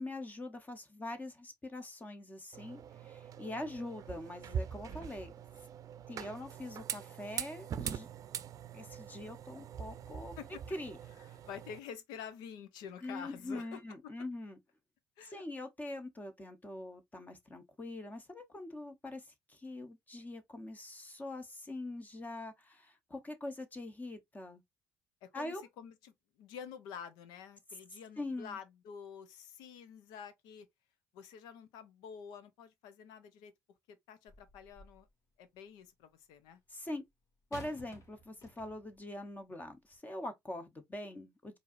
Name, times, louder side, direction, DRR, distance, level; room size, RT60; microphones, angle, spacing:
voice 1, 0.0-5.3 6.1-8.1 8.7-10.3 10.7-11.0 13.0-14.6 15.2-24.6 25.3-25.7 28.2-28.6 36.7-37.0 37.5-41.6, left 1 dB, 25° left, 1.0 m, -43 dB
sound 1, 2.5-11.8, right 8 dB, 55° right, 0.5 m, -43 dB
voice 2, 4.9-5.3 10.4-10.6 11.2-13.8 15.2-15.4 25.2-30.7 31.1-33.5 33.9-35.1 35.4-36.6, left 7 dB, 85° left, 0.7 m, -49 dB
sound 2, 34.3-35.1 37.5-39.0 39.8-40.0, equal, 55° left, 2.1 m, -53 dB
4.6 x 2.7 x 2.5 m
supercardioid pair, 70°, 7 cm